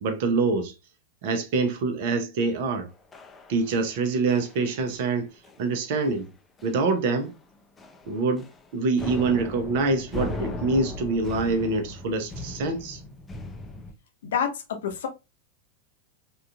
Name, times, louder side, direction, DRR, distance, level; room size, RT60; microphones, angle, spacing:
voice 1, 0.0-0.7 1.2-2.9 3.5-5.3 5.6-6.3 6.6-7.3 8.1-8.5 8.7-13.0, right 3 dB, 50° right, 0.6 m, -25 dB
sound 1, 3.1-4.0 4.3-4.6 4.9-5.1 5.4-5.6 6.0-6.1 6.6-6.9 7.2-7.4 7.8-8.7 9.0-13.9, left 2 dB, 15° left, 0.4 m, -37 dB
voice 2, 14.2-15.1, left 7 dB, 60° left, 0.7 m, -28 dB
3.7 x 2.4 x 2.2 m
figure-of-eight pair, 90°, 0 cm